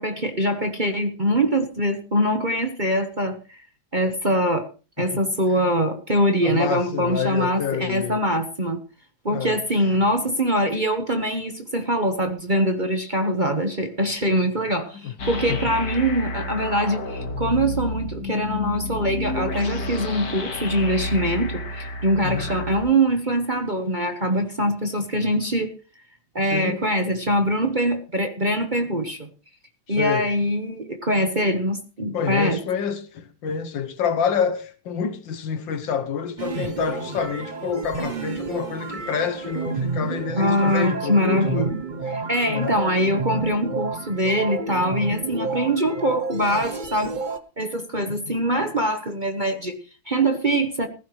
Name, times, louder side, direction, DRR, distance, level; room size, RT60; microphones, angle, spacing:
voice 1, 0.0-3.6 3.9-4.7 5.0-8.8 9.2-25.7 26.3-29.3 29.9-32.6 40.4-41.7 42.1-47.1 47.6-50.9, equal, 30° right, 1.2 m, -23 dB
voice 2, 6.4-8.2 9.3-9.6 14.9-15.1 15.5-15.7 22.2-22.5 26.5-26.8 29.9-30.3 32.1-41.7 42.0-42.8 48.1-48.4, left 7 dB, 70° left, 1.7 m, -27 dB
sound 1, 15.2-22.8, left 2 dB, 50° left, 2.2 m, -30 dB
sound 2, 36.4-47.4, right 4 dB, 65° right, 0.4 m, -30 dB
16.0 x 15.0 x 3.2 m
omnidirectional pair, 2.2 m